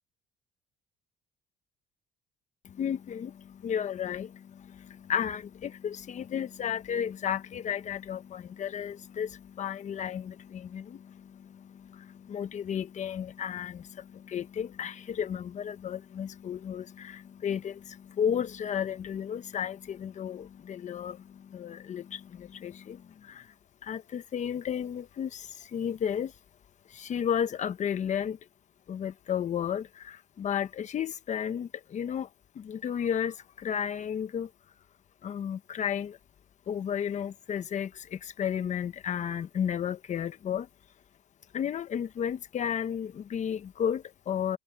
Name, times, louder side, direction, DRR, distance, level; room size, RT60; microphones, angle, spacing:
voice 1, 2.6-23.5 23.8-26.3 26.9-28.4 28.9-32.3 32.5-34.5 35.2-36.2 36.7-40.7 41.5-44.6, left 8 dB, 45° left, 1.1 m, -33 dB
cardioid pair, 110°, 17 cm